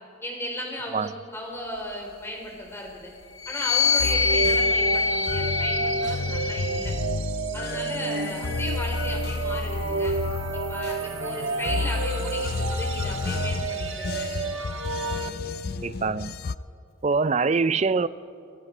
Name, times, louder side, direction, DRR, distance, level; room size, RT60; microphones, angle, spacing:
voice 1, 0.2-3.1 3.5-6.9 7.5-10.1 10.5-14.4, left 1 dB, 10° left, 0 dB, 3.7 m, -35 dB
sound 1, 3.4-7.0 7.8-9.4, left 5 dB, 90° left, 0.9 m, -26 dB
sound 2, 4.0-16.6, left 4 dB, 50° left, 0.4 m, -32 dB
sound 3, 4.0-15.3, right 3 dB, 75° right, 1.3 m, -31 dB
voice 2, 15.8-16.3 17.0-18.1, right 4 dB, 35° right, 16 dB, 0.4 m, -24 dB
26.5 x 20.0 x 5.0 m, 2.5 s
head